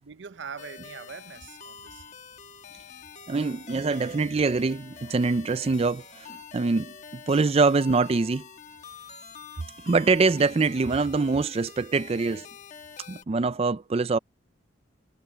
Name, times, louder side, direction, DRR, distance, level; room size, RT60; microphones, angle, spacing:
voice 1, 0.1-2.0, right 6 dB, 75° right, 0.7 m, -42 dB
sound 1, 0.6-13.2, left 6 dB, 40° left, 1.3 m, -46 dB
voice 2, 3.3-8.4 9.8-12.5 13.1-14.2, right 4 dB, 35° right, 0.4 m, -24 dB
head